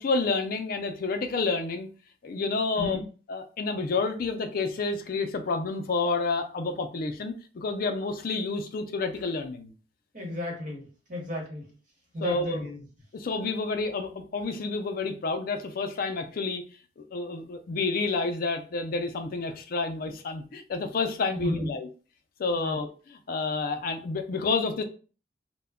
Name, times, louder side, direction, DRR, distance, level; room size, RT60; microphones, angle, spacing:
voice 1, 0.0-1.9 2.2-3.0 3.3-9.7 12.2-12.6 13.1-16.6 17.0-21.9 22.4-22.9 23.3-24.8, left 3 dB, 55° left, 6 dB, 0.4 m, -29 dB
voice 2, 2.7-3.1 10.1-11.7 12.1-12.8 21.3-21.7 22.5-22.8, left 2 dB, 50° right, -1 dB, 1.1 m, -33 dB
2.2 x 2.1 x 3.5 m, 0.36 s
head